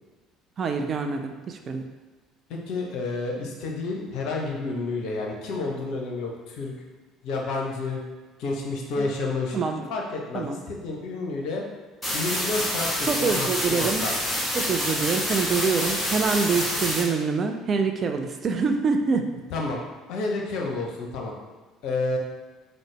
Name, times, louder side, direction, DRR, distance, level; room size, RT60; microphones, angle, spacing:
voice 1, 0.6-1.9 9.0-9.1 9.5-9.8 10.3-10.6 13.1-14.0 14.5-19.3, right 5 dB, 40° right, 5 dB, 0.3 m, -25 dB
voice 2, 2.5-6.7 7.2-8.0 8.4-9.6 9.9-11.6 12.1-14.1 19.5-19.8 20.1-21.3 21.8-22.2, left 3 dB, 55° left, 0 dB, 0.6 m, -30 dB
sound 1, 12.0-17.0, equal, ahead, 1.5 m, -27 dB
3.8 x 2.0 x 3.1 m, 1.3 s
figure-of-eight pair, 55°, 0 cm